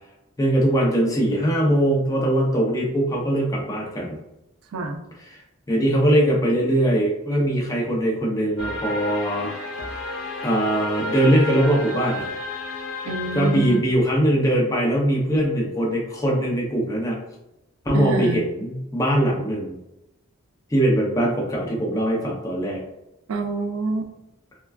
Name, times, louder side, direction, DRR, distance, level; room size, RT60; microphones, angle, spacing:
voice 1, 0.4-4.2 5.3-5.4 5.7-9.5 9.9-10.0 10.4-12.3 13.3-17.2 17.9-19.8 20.7-22.8, right 1 dB, 15° left, -2 dB, 0.5 m, -21 dB
voice 2, 4.7-5.0 13.1-13.8 17.9-18.5 23.3-24.1, right 2 dB, 80° right, 4 dB, 0.4 m, -26 dB
sound 1, 8.6-13.8, left 2 dB, 85° left, 0.7 m, -32 dB
3.2 x 2.2 x 2.3 m, 0.90 s
head